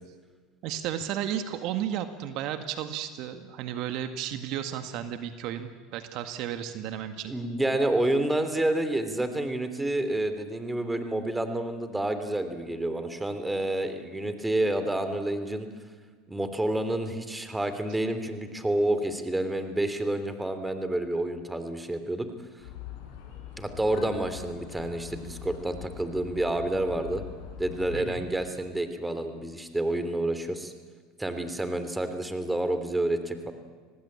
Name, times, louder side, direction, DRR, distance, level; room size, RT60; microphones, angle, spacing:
voice 1, 0.6-7.4 27.9-28.3, right 10 dB, 60° right, 8 dB, 1.9 m, -33 dB
voice 2, 7.3-15.7 16.3-22.3 23.6-27.2 27.6-30.7 31.2-33.5, right 1 dB, 10° right, 9 dB, 3.1 m, -29 dB
sound 1, 22.6-28.2, left 10 dB, 70° left, 7.2 m, -43 dB
25.5 x 19.0 x 8.8 m, 1.5 s
hypercardioid pair, 90°, 0 cm